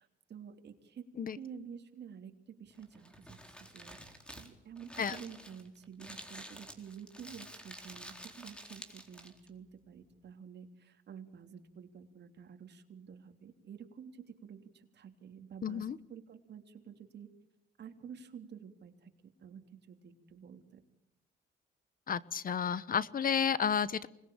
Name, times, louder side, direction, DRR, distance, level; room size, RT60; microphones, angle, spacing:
voice 1, 0.0-1.1 1.3-17.3 17.8-20.8, right 7 dB, 60° right, 6 dB, 3.2 m, -50 dB
Crumpling crinkling, 2.7-9.5, equal, 5° left, 4.0 m, -50 dB
voice 2, 15.6-16.0 22.1-24.1, left 7 dB, 45° left, 17 dB, 1.0 m, -31 dB
26.5 x 21.0 x 8.7 m, 0.83 s
cardioid pair, 90°, 20 cm